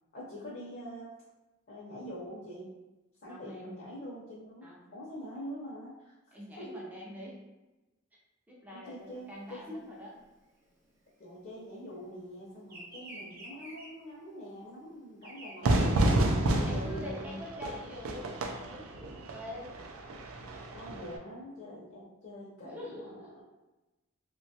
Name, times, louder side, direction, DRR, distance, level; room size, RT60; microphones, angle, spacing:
voice 1, 0.1-1.1 1.7-2.7 3.2-6.1 6.6-6.8 8.7-9.9 11.2-16.3 16.7-17.4 20.7-23.4, equal, 45° left, -6 dB, 0.6 m, -44 dB
voice 2, 3.3-3.7 4.6-4.9 6.3-7.4 8.5-10.1 16.5-19.7 22.6-23.4, left 1 dB, 10° right, -4 dB, 0.4 m, -45 dB
Bird vocalization bird call bird song, 9.1-12.0 12.2-17.0, right 1 dB, 45° right, 0.8 m, -49 dB
Fire / Fireworks, 15.6-21.2, right 1 dB, 90° right, 0.4 m, -30 dB
2.9 x 2.2 x 2.7 m, 1.1 s
head